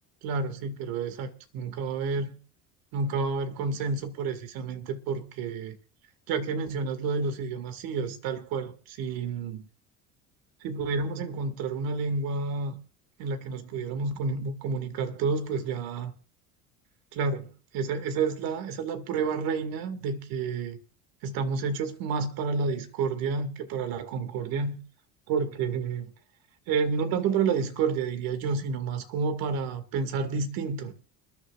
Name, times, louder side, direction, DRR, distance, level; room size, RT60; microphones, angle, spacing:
voice 1, 0.2-2.4 2.9-5.8 6.3-9.7 10.6-12.8 13.2-16.1 17.1-20.8 21.2-24.8 25.3-26.1 26.7-30.9, right 5 dB, 70° right, 2.2 m, -30 dB
29.5 x 10.0 x 2.5 m
supercardioid pair, 95°, 36 cm